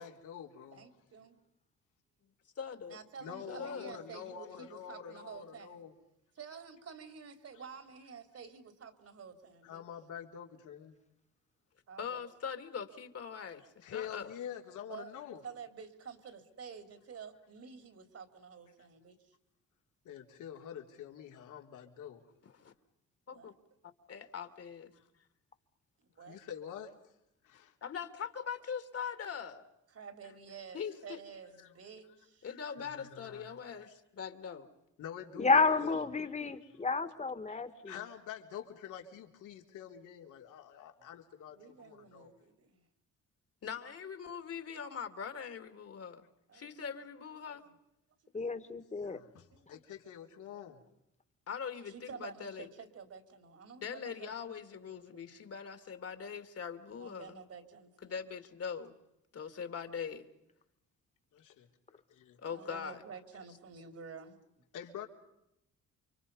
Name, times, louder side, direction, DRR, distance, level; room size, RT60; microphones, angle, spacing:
voice 1, 0.0-0.9 3.2-5.9 9.6-11.0 13.8-15.4 20.0-22.3 24.9-25.1 26.2-26.9 27.4-27.7 31.6-31.7 32.5-33.9 35.0-36.0 36.6-36.7 37.5-42.3 48.9-50.8 61.3-61.7 61.9-62.4 64.7-65.1, left 9 dB, 85° left, 2 dB, 3.6 m, -47 dB
voice 2, 0.7-1.4 2.9-5.8 6.4-9.8 11.9-12.2 14.9-15.1 15.4-19.3 23.3-23.5 26.2-26.4 29.9-32.5 41.5-42.8 46.5-46.7 47.5-47.7 48.6-48.7 49.5-49.8 51.9-55.4 57.0-58.2 62.4-64.4, right 6 dB, 55° right, 8 dB, 3.5 m, -50 dB
voice 3, 2.6-3.0 3.5-3.9 12.0-14.3 22.4-22.7 23.3-23.5 24.1-24.9 27.8-29.6 30.7-31.2 32.4-34.7 37.8-37.9 43.6-46.2 46.5-47.6 51.5-52.7 53.8-57.4 58.0-58.9 59.3-60.2 62.4-63.0, left 7 dB, 50° left, 8 dB, 2.6 m, -42 dB
voice 4, 35.4-37.9 48.3-49.2, left 4 dB, 25° left, 10 dB, 2.0 m, -30 dB
29.5 x 24.5 x 5.5 m, 0.83 s
cardioid pair, 90°, 30 cm